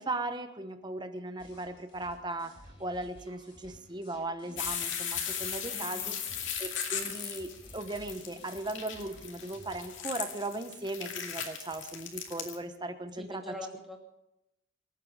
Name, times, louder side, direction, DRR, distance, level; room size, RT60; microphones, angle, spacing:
voice 1, 0.0-2.5 2.8-6.2 6.6-13.4, right 2 dB, 20° right, 8 dB, 1.1 m, -37 dB
sound 1, 1.4-10.0, equal, 25° left, 4.1 m, -55 dB
sound 2, 4.6-12.6, left 8 dB, 60° left, 2.5 m, -37 dB
voice 2, 5.7-6.2 13.2-14.0, left 1 dB, ahead, 0 dB, 2.3 m, -44 dB
25.5 x 9.1 x 5.2 m, 0.88 s
head